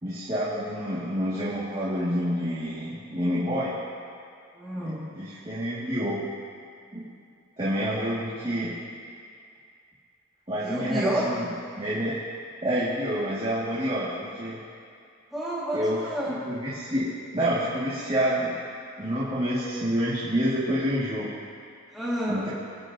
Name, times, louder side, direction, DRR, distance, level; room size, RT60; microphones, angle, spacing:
voice 1, 0.0-3.7 5.2-6.2 6.9-7.0 7.6-8.7 10.5-11.5 11.8-12.1 12.6-14.6 15.7-17.0 17.3-18.5 19.0-21.3 22.3-22.5, equal, 25° right, -10 dB, 2.3 m, -28 dB
voice 2, 4.6-5.1 10.6-11.2 15.3-16.5 21.9-22.4, right 1 dB, ahead, -8 dB, 2.2 m, -30 dB
27.0 x 9.9 x 2.9 m, 2.3 s
head